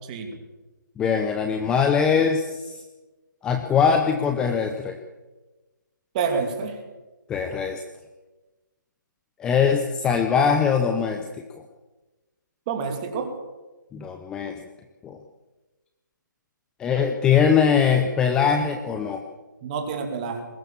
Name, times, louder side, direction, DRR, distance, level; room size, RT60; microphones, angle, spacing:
voice 1, 1.0-2.8 3.4-5.0 7.3-7.8 9.4-11.3 13.9-14.5 15.0-15.2 16.8-19.2, left 6 dB, 5° left, 6 dB, 0.7 m, -22 dB
voice 2, 6.1-6.8 12.7-13.3 19.6-20.5, right 5 dB, 20° right, 5 dB, 2.7 m, -28 dB
21.0 x 17.0 x 7.3 m, 1.2 s
hypercardioid pair, 160°, 11 cm